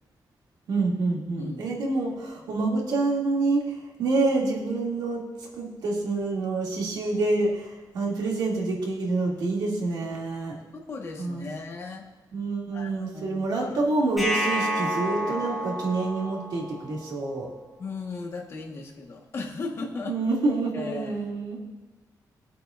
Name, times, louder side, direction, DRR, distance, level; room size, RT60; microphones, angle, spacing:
voice 1, 0.7-10.6 11.2-11.4 12.3-17.5 20.0-21.6, right 3 dB, 85° right, -2 dB, 2.7 m, -27 dB
voice 2, 1.4-1.8 10.7-12.0 12.7-13.8 15.2-15.4 17.8-20.2 20.7-21.2, left 3 dB, 40° left, 0 dB, 1.5 m, -37 dB
sound 1, 14.2-17.2, equal, ahead, 2.4 m, -30 dB
21.0 x 8.4 x 2.6 m, 1.1 s
wide cardioid pair, 180°, 7 cm